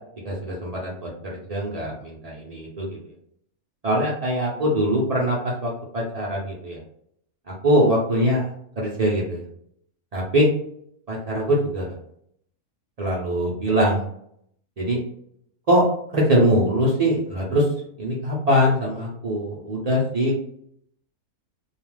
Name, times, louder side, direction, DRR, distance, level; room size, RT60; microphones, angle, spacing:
voice 1, 0.2-1.1 1.5-2.9 3.8-6.8 7.6-8.5 8.8-9.4 10.1-10.5 11.1-11.9 13.0-14.0 14.8-15.0 15.7-15.8 16.1-17.7 18.0-20.4, equal, 80° right, -4 dB, 0.3 m, -22 dB
2.3 x 2.3 x 3.2 m, 0.68 s
omnidirectional pair, 1.6 m